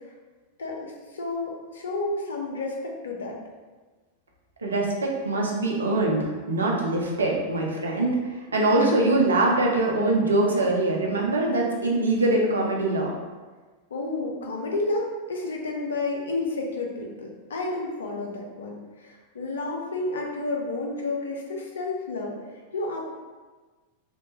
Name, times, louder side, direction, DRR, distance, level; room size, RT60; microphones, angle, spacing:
voice 1, 0.6-3.4 13.9-22.4 22.7-23.1, left 2 dB, 65° left, 0 dB, 0.5 m, -31 dB
voice 2, 4.6-8.2 8.5-13.1, right 2 dB, 75° right, -1 dB, 0.5 m, -23 dB
2.8 x 2.1 x 2.8 m, 1.3 s
figure-of-eight pair, 90°, 0 cm